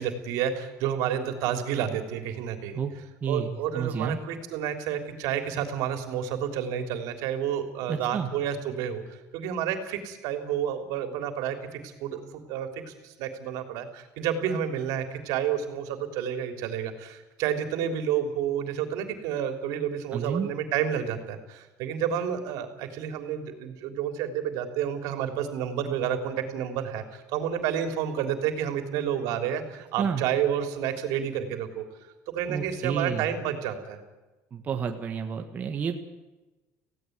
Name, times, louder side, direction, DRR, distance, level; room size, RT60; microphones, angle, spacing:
voice 1, 0.0-2.8 3.3-9.0 9.3-31.8 32.3-34.0, right 9 dB, 75° right, 7 dB, 3.4 m, -30 dB
voice 2, 3.2-4.2 7.9-8.3 20.1-20.5 30.0-30.2 32.5-33.2 34.5-36.0, right 6 dB, 25° right, 4 dB, 1.6 m, -30 dB
18.0 x 16.5 x 9.4 m, 1.1 s
cardioid pair, 170°, 6 cm